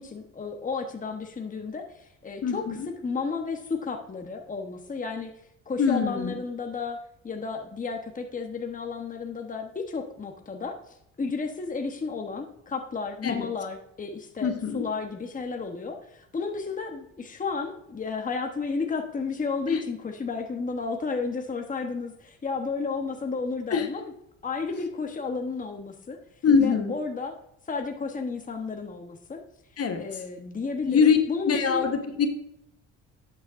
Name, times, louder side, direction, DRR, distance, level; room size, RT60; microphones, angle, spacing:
voice 1, 0.0-2.7 3.0-5.3 5.7-7.0 7.2-10.8 11.2-24.1 24.4-26.2 26.6-27.3 27.7-29.4 30.0-31.9, left 4 dB, 25° left, 4 dB, 1.1 m, -32 dB
voice 2, 2.4-2.9 5.8-6.3 13.2-13.5 14.4-14.9 19.7-19.8 23.7-23.9 24.7-24.8 26.4-26.9 29.8-30.0 30.8-31.2 31.4-32.3, left 6 dB, 55° left, 6 dB, 1.2 m, -23 dB
11.5 x 8.1 x 2.6 m, 0.79 s
cardioid pair, 90°, 30 cm